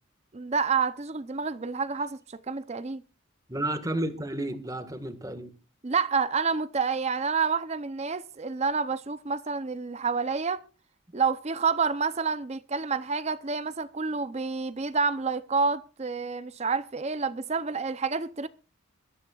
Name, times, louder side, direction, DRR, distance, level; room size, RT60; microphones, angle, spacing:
voice 1, 0.3-3.0 5.8-10.6 11.1-18.5, right 5 dB, 30° right, 0.6 m, -28 dB
voice 2, 3.5-5.5, right 1 dB, 15° right, 1.6 m, -32 dB
22.5 x 13.0 x 2.4 m
head